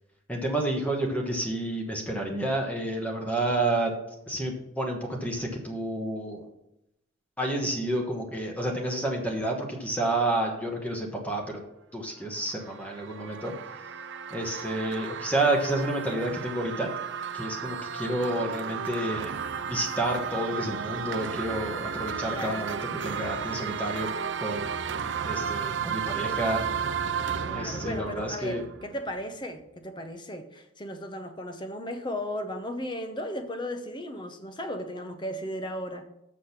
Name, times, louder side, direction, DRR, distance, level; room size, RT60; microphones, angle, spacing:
voice 1, 0.3-3.9 4.3-6.5 7.4-11.6 11.9-13.5 14.3-16.9 17.3-19.3 19.7-22.8 23.0-24.1 24.4-24.7 25.2-26.6 27.5-28.6, right 1 dB, 5° left, 1 dB, 1.2 m, -30 dB
sound 1, 12.2-29.2, right 6 dB, 60° right, 0.4 m, -34 dB
voice 2, 22.2-22.7 27.5-36.0, equal, 20° left, 8 dB, 0.7 m, -36 dB
6.6 x 6.3 x 5.8 m, 0.83 s
head